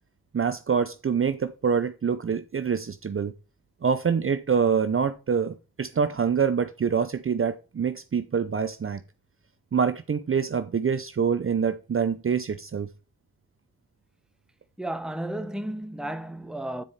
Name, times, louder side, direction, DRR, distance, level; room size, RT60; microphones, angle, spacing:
voice 1, 0.3-3.3 3.8-9.0 9.7-12.9, right 6 dB, 35° right, 0.7 m, -25 dB
voice 2, 14.8-16.8, right 1 dB, ahead, 1.0 m, -33 dB
9.2 x 4.7 x 4.2 m
cardioid pair, 50°, 36 cm